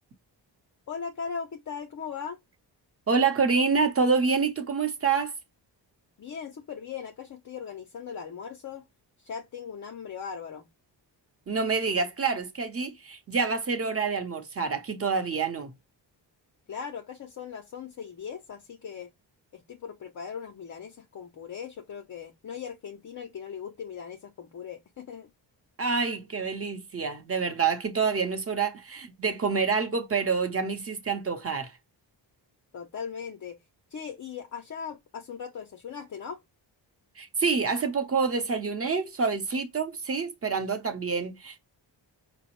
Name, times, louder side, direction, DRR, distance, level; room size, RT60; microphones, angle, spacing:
voice 1, 0.9-2.4 6.2-8.9 9.2-10.7 16.7-19.1 19.5-25.3 32.7-33.6 33.9-36.4, left 6 dB, 40° left, 0.5 m, -39 dB
voice 2, 3.1-5.3 11.5-15.7 25.8-31.7 37.2-41.6, right 5 dB, 30° right, 0.7 m, -27 dB
4.7 x 2.1 x 2.9 m
wide cardioid pair, 105°, 45 cm